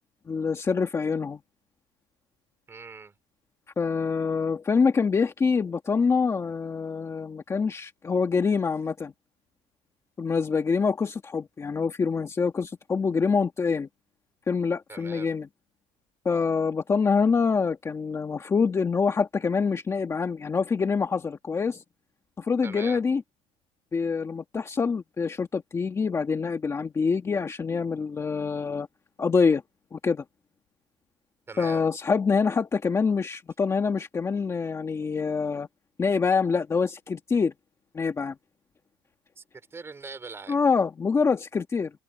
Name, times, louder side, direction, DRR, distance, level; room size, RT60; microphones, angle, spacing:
voice 1, 0.3-1.4 3.8-9.1 10.2-13.9 14.5-15.5 16.3-21.8 22.4-23.2 23.9-28.9 29.2-29.6 29.9-30.2 31.6-35.7 36.0-37.5 37.9-38.3 40.5-41.9, left 5 dB, 20° left, 1.8 m, -25 dB
voice 2, 2.7-3.1 14.9-15.3 22.6-23.0 31.5-31.9 39.4-39.5 39.7-40.6, right 4 dB, 15° right, 3.9 m, -41 dB
cardioid pair, 145°, 15 cm